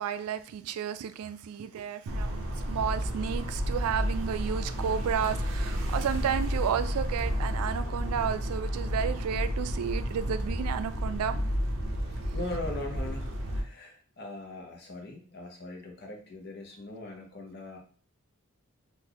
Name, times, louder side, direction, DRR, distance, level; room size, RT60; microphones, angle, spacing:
voice 1, 0.0-11.4, right 8 dB, 85° right, 11 dB, 0.3 m, -32 dB
sound 1, 2.1-13.6, equal, 60° right, 0.7 m, -31 dB
voice 2, 12.0-17.8, left 2 dB, 45° left, 1 dB, 0.8 m, -40 dB
3.8 x 2.5 x 2.8 m, 0.42 s
head